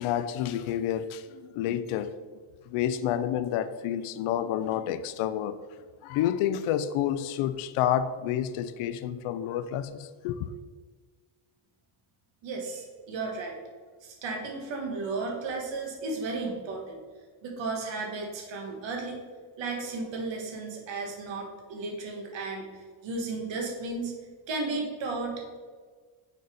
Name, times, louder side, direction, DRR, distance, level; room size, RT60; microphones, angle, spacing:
voice 1, 0.0-2.2 2.7-5.6 6.0-10.5, left 10 dB, 90° left, 0.6 m, -29 dB
voice 2, 12.4-13.5 14.0-17.0 17.4-19.2 19.6-24.1 24.5-25.6, right 3 dB, 65° right, 1.5 m, -34 dB
6.5 x 4.0 x 5.0 m
cardioid pair, 155°, 49 cm